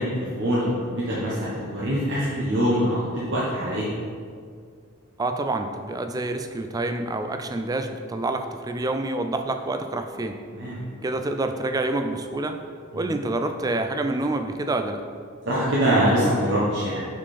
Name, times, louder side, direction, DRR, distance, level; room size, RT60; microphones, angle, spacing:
voice 1, 0.0-3.9 10.5-10.8 12.9-13.1 15.5-17.0, equal, 60° right, -7 dB, 1.1 m, -24 dB
voice 2, 5.2-10.4 11.0-12.6 12.9-15.0, right 2 dB, 15° right, 7 dB, 0.4 m, -27 dB
6.2 x 5.6 x 4.2 m, 2.1 s
head